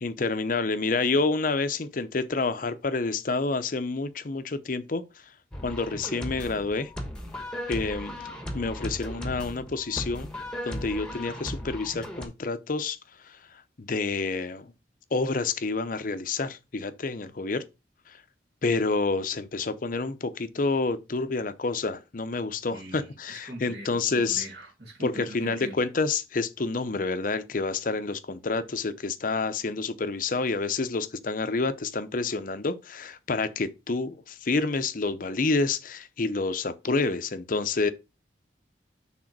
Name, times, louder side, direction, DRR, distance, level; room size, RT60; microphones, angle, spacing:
voice 1, 0.0-5.0 5.6-6.9 7.7-8.2 8.5-10.3 10.6-13.0 13.2-13.4 13.8-14.7 15.1-17.6 18.1-18.2 18.6-24.5 25.0-37.9, left 3 dB, 50° left, 0.6 m, -28 dB
sound 1, 5.5-12.3, equal, 5° left, 1.2 m, -36 dB
voice 2, 22.7-25.8, right 1 dB, 60° right, 2.5 m, -42 dB
6.4 x 3.7 x 6.0 m
head